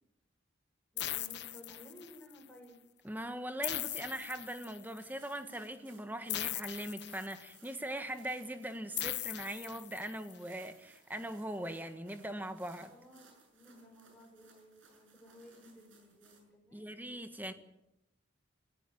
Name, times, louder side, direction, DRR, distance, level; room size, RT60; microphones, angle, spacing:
voice 1, 0.9-2.8 12.9-16.9, equal, 5° left, 0 dB, 7.0 m, -56 dB
sound 1, 1.0-2.3 3.6-5.0 6.3-7.7 9.0-10.3, left 14 dB, 65° left, 1.1 m, -39 dB
voice 2, 3.0-12.9 16.7-17.5, right 1 dB, 10° right, 8 dB, 1.5 m, -41 dB
sound 2, 5.1-16.4, right 4 dB, 85° right, 6.7 m, -64 dB
20.0 x 16.5 x 8.6 m, 0.87 s
head